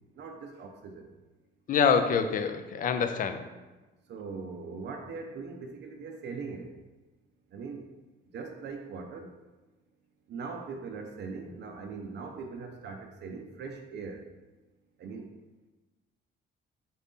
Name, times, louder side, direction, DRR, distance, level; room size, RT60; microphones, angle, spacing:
voice 1, 0.2-1.1 4.1-6.8 7.5-7.9 8.3-9.4 10.3-14.3 15.0-15.3, right 4 dB, 60° right, 4 dB, 0.5 m, -40 dB
voice 2, 1.7-3.4, left 6 dB, 45° left, 8 dB, 0.4 m, -25 dB
4.1 x 2.6 x 3.5 m, 1.2 s
cardioid pair, 90°, 20 cm